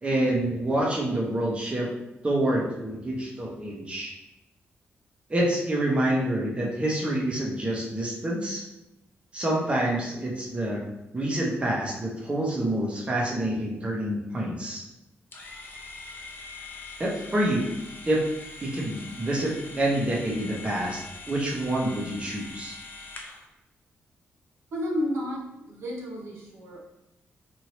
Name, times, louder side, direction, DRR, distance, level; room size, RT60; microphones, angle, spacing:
voice 1, 0.0-1.9 2.2-4.1 5.3-8.6 9.3-14.8 17.0-17.6 18.0-18.2 18.6-22.8, right 1 dB, 25° right, -4 dB, 0.8 m, -27 dB
sound 1, 15.3-23.5, left 3 dB, 50° left, 0.5 m, -43 dB
voice 2, 24.7-26.8, equal, 75° right, -3 dB, 0.7 m, -32 dB
2.9 x 2.6 x 3.0 m, 0.91 s
cardioid pair, 85°, 4 cm